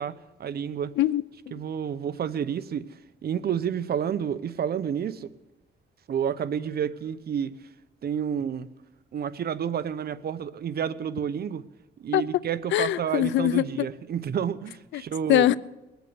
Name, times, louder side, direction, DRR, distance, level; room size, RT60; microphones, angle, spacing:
voice 1, 0.0-0.9 1.5-2.9 3.2-5.3 6.1-7.5 8.0-8.7 9.1-11.6 12.0-15.4, right 8 dB, 55° right, 0.8 m, -30 dB
voice 2, 1.0-1.5 12.1-12.3 12.7-13.9 14.9-15.0 15.3-15.6, left 13 dB, 85° left, 0.5 m, -23 dB
21.5 x 8.2 x 8.0 m
cardioid pair, 95°, 19 cm